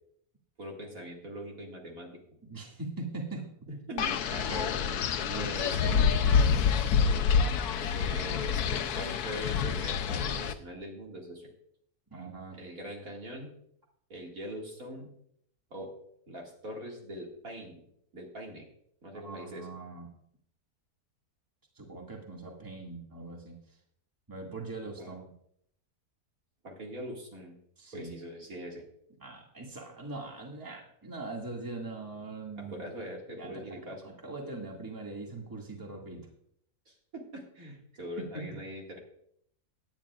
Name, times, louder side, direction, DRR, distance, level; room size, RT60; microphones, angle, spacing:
voice 1, 0.6-2.1 3.7-5.0 5.4-6.5 7.9-11.5 12.5-13.5 14.1-15.1 15.7-15.9 16.3-17.8 18.1-18.7 19.0-19.7 25.0-25.2 26.6-27.6 27.9-28.8 32.6-34.1 36.9-39.0, equal, 65° right, -1 dB, 2.6 m, -42 dB
voice 2, 2.4-3.5 3.9-4.1 4.5-4.9 5.2-6.4 12.1-12.6 19.1-20.1 21.8-23.8 24.3-25.3 27.8-28.1 29.2-32.8 33.4-36.3 38.2-38.6, right 3 dB, 15° right, -1 dB, 2.0 m, -41 dB
Wind, 4.0-10.5, left 6 dB, 80° left, 1.2 m, -27 dB
17.5 x 10.5 x 2.4 m, 0.69 s
omnidirectional pair, 1.6 m